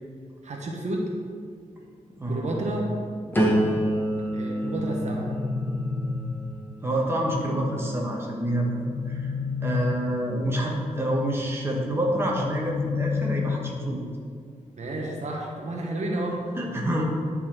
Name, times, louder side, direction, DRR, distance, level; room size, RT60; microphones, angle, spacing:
voice 1, 0.4-1.1 2.3-2.9 4.3-5.3 14.8-16.4, right 2 dB, 60° right, -1 dB, 1.1 m, -31 dB
voice 2, 2.2-2.7 6.8-9.3 9.6-14.0 16.3-17.0, equal, 20° right, -2 dB, 1.2 m, -27 dB
sound 1, 3.3-9.2 9.7-10.2, equal, 15° left, 1.2 m, -29 dB
sound 2, 4.8-6.8 8.4-10.5 12.1-14.2, left 4 dB, 90° left, 0.9 m, -31 dB
11.0 x 4.2 x 4.4 m, 2.1 s
wide cardioid pair, 125°, 13 cm